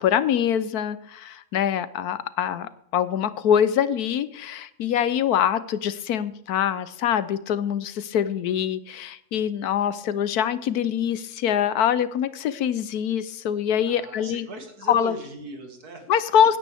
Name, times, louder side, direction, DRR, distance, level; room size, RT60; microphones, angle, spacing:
voice 1, 0.0-14.5 14.9-15.1 16.1-16.6, left 9 dB, 80° left, 15 dB, 1.3 m, -24 dB
voice 2, 13.8-16.1, right 3 dB, 85° right, 4 dB, 2.7 m, -39 dB
16.0 x 10.0 x 3.5 m, 0.76 s
omnidirectional pair, 1.6 m